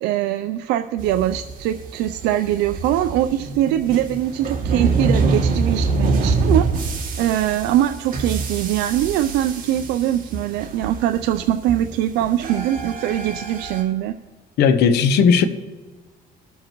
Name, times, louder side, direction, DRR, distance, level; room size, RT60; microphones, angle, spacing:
voice 1, 0.0-6.6 7.2-14.1, right 12 dB, 90° right, 0.5 m, -22 dB
sound 1, 1.0-13.8, right 4 dB, 55° right, 2.4 m, -25 dB
voice 2, 14.6-15.4, left 6 dB, 80° left, 0.9 m, -15 dB
21.0 x 7.3 x 3.0 m
cardioid pair, 110°, 17 cm